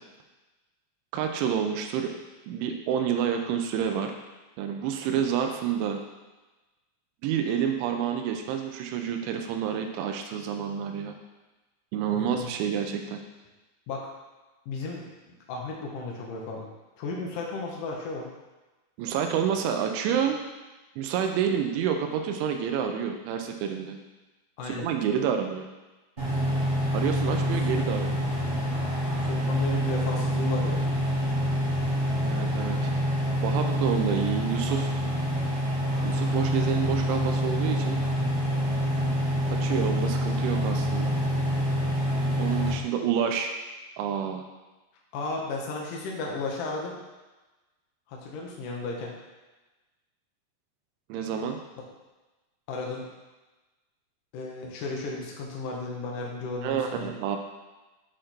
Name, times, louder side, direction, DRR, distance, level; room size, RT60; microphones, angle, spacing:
voice 1, 1.1-2.2 2.5-4.1 4.6-6.0 7.2-11.1 11.9-13.2 19.0-20.4 21.0-24.0 24.6-25.7 26.9-28.3 32.2-32.9 33.4-34.9 36.0-38.0 39.5-41.1 42.4-43.5 44.0-44.4 51.1-51.6 56.6-57.4, right 8 dB, 85° right, 4 dB, 3.0 m, -28 dB
voice 2, 12.1-12.5 13.9-14.1 14.7-16.7 17.0-18.3 24.6-24.9 27.4-27.5 29.2-30.9 45.1-47.0 48.1-49.1 52.7-53.1 54.3-57.1, left 3 dB, 70° left, -2 dB, 2.0 m, -34 dB
sound 1, 26.2-42.7, equal, 15° right, 1.6 m, -26 dB
7.6 x 5.1 x 4.4 m, 1.2 s
omnidirectional pair, 5.3 m